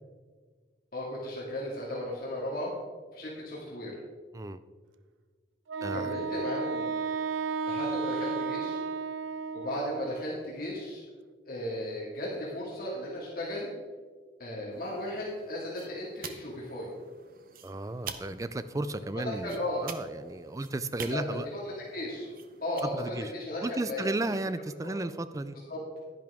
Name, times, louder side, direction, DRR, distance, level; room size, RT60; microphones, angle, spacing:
voice 1, 0.9-2.7 3.1-3.9 5.9-6.9 7.7-8.8 9.5-11.0 11.4-13.7 14.4-16.9 19.1-19.8 21.1-22.3 22.6-24.1 24.8-25.0 25.7-25.8, left 1 dB, 50° left, -5 dB, 2.1 m, -35 dB
Wind instrument woodwind instrument, 5.7-10.3, right 4 dB, 90° right, 0.5 m, -33 dB
voice 2, 5.8-6.3 17.6-21.5 22.9-23.3 23.6-25.6, right 2 dB, 15° right, 13 dB, 0.3 m, -34 dB
sound 1, 14.7-22.8, right 6 dB, 50° right, 0.7 m, -47 dB
10.5 x 10.5 x 3.6 m, 1.5 s
head